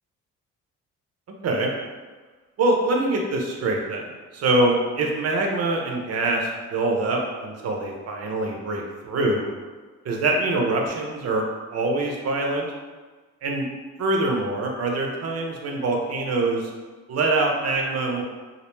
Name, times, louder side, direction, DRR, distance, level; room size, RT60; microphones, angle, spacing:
voice 1, 2.6-9.5 10.0-11.4 11.7-12.7 13.4-13.7 14.0-16.7 17.1-18.2, right 2 dB, 55° right, 1 dB, 0.5 m, -24 dB
2.3 x 2.1 x 3.0 m, 1.3 s
cardioid pair, 90°, 30 cm